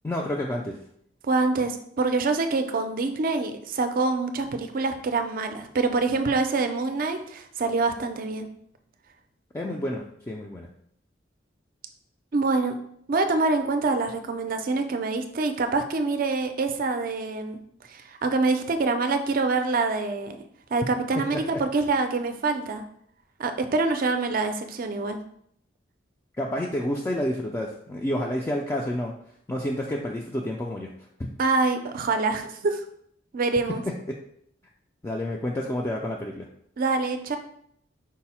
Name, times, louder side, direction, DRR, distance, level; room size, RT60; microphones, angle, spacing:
voice 1, 0.0-0.8 9.5-10.7 21.3-21.4 26.4-29.1 29.5-30.9 34.1-34.2 35.0-36.5, left 1 dB, 15° left, -2 dB, 0.3 m, -29 dB
voice 2, 1.2-8.5 12.3-12.8 13.1-17.6 17.9-20.4 20.7-22.8 23.4-25.2 31.4-32.8 33.3-33.8 36.8-37.4, right 3 dB, 50° right, 7 dB, 0.4 m, -25 dB
4.6 x 2.0 x 4.2 m, 0.68 s
head